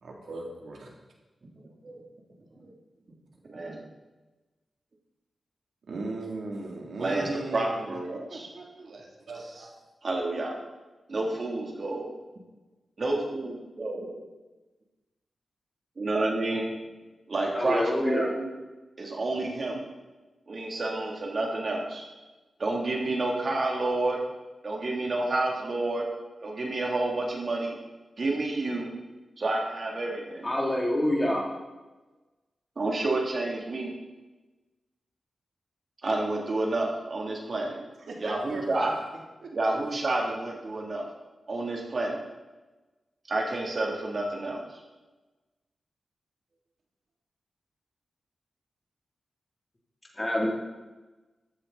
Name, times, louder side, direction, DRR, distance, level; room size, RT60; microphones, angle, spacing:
voice 1, 0.0-1.0 5.9-8.0 8.3-9.7 38.1-38.9 39.4-39.5, right 2 dB, 75° right, -1 dB, 3.0 m, -38 dB
voice 2, 3.4-3.8 7.0-8.5 10.0-10.6 11.1-12.1 13.0-14.2 16.0-16.7 17.3-18.5 19.0-19.8 20.5-22.1 22.6-24.2 24.6-26.1 26.4-27.8 28.2-28.9 29.4-30.5 32.8-33.9 36.0-37.8 38.2-38.9 39.5-41.1 41.5-42.2 43.3-44.8, right 2 dB, 45° right, -1 dB, 3.1 m, -29 dB
voice 3, 17.5-18.3 30.4-31.4 50.2-50.5, left 1 dB, 20° left, -2 dB, 3.2 m, -26 dB
14.5 x 13.0 x 4.2 m, 1.2 s
wide cardioid pair, 120°, 0 cm